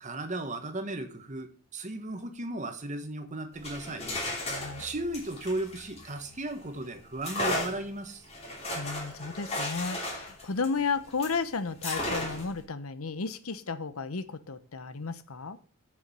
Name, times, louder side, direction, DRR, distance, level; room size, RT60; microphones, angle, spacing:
voice 1, 0.0-4.0 4.8-8.3, right 2 dB, 35° right, 1.4 m, -35 dB
sound 1, 3.5-6.6 7.2-11.4 11.8-12.6, left 1 dB, 30° left, 2.9 m, -35 dB
voice 2, 4.4-4.8 8.7-15.6, left 4 dB, 85° left, 0.9 m, -33 dB
7.1 x 6.4 x 7.9 m
head